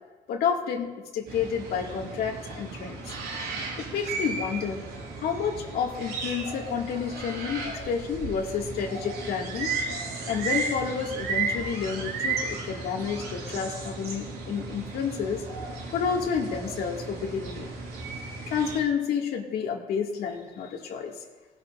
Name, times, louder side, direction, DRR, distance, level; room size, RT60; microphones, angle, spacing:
voice 1, 0.3-3.2 3.8-4.8 5.2-9.7 10.3-15.5 15.9-17.7 18.5-21.2, left 6 dB, 65° left, 0 dB, 2.0 m, -30 dB
sound 1, 1.3-18.8, right 4 dB, 75° right, 4.8 m, -34 dB
19.5 x 11.5 x 2.5 m, 1.2 s
cardioid pair, 110°, 17 cm